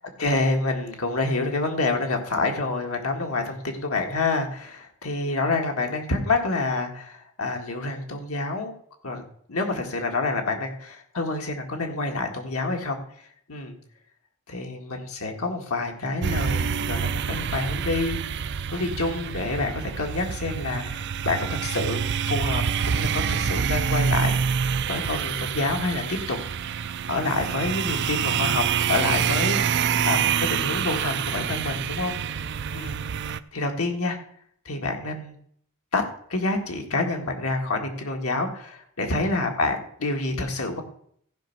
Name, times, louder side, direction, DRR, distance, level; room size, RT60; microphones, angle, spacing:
voice 1, 0.2-8.7 9.0-9.2 9.5-13.0 13.5-13.8 14.5-18.2 18.7-24.4 24.9-26.4 27.1-32.4 32.7-33.0 33.5-34.2 34.7-35.4 35.9-40.8, left 2 dB, 80° left, 3 dB, 1.8 m, -28 dB
sound 1, 16.2-33.4, right 7 dB, 50° right, 0.4 m, -26 dB
15.0 x 5.3 x 5.9 m, 0.64 s
head